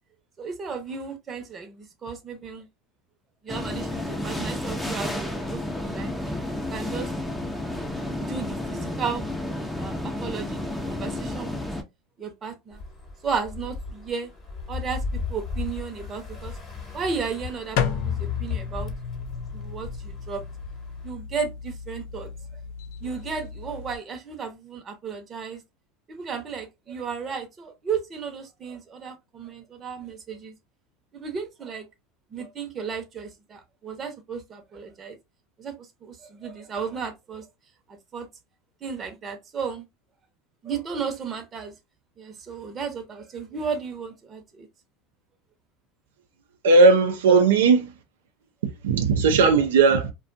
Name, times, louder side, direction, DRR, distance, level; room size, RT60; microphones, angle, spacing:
voice 1, 0.4-2.7 3.4-6.1 6.7-7.1 8.2-9.3 9.8-11.6 12.2-12.8 13.2-14.3 14.7-16.6 16.9-18.9 19.5-20.4 21.0-22.3 23.0-25.6 26.1-30.5 31.1-31.9 32.3-35.2 35.6-37.5 37.9-38.3 38.8-39.8 40.6-41.7 42.2-44.7 47.3-47.4, right 5 dB, 30° right, 0.8 m, -34 dB
sound 1, 3.5-11.8, left 1 dB, 5° left, 0.6 m, -31 dB
sound 2, 12.7-21.1, left 5 dB, 30° left, 1.1 m, -35 dB
sound 3, 17.8-24.0, left 7 dB, 70° left, 0.4 m, -33 dB
voice 2, 46.6-47.8 48.6-50.1, right 4 dB, 90° right, 0.5 m, -17 dB
2.4 x 2.3 x 2.5 m
supercardioid pair, 105°, 0 cm